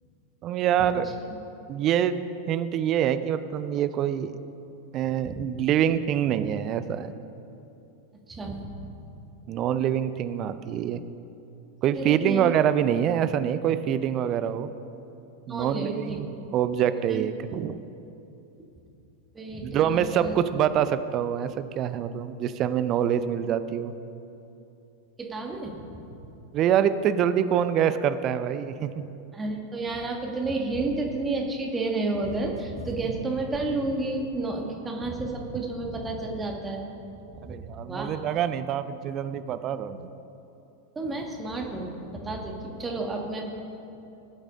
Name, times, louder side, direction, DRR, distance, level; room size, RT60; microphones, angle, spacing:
voice 1, 0.4-1.1 1.7-2.2 2.5-4.4 4.9-7.1 9.5-11.0 11.8-14.7 15.5-16.3 16.5-17.8 19.6-23.9 26.5-29.1 37.4-40.1, right 9 dB, 35° right, 12 dB, 0.5 m, -25 dB
voice 2, 8.3-8.9 12.0-12.5 15.5-16.2 16.8-17.2 19.4-20.3 25.2-25.7 29.3-36.9 37.3-38.1 41.0-43.4, right 2 dB, 15° right, 1 dB, 1.7 m, -31 dB
20.0 x 8.8 x 3.7 m, 2.9 s
figure-of-eight pair, 90°, 0 cm